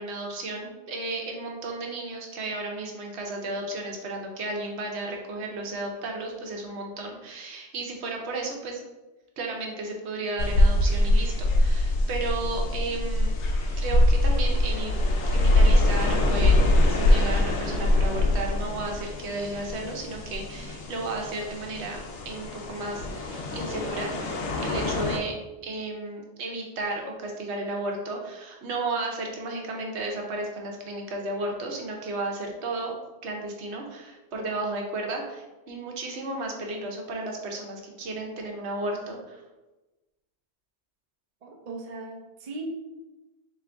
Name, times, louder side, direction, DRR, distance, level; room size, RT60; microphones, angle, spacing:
voice 1, 0.0-8.8 9.4-13.4 13.8-14.9 15.3-24.2 24.6-32.9 33.2-39.4, right 2 dB, 75° right, 1 dB, 1.0 m, -33 dB
sound 1, 10.4-25.2, left 1 dB, 90° left, 0.9 m, -23 dB
voice 2, 41.4-42.7, right 3 dB, 45° right, 1 dB, 0.5 m, -38 dB
3.7 x 2.9 x 3.4 m, 1.1 s
omnidirectional pair, 1.2 m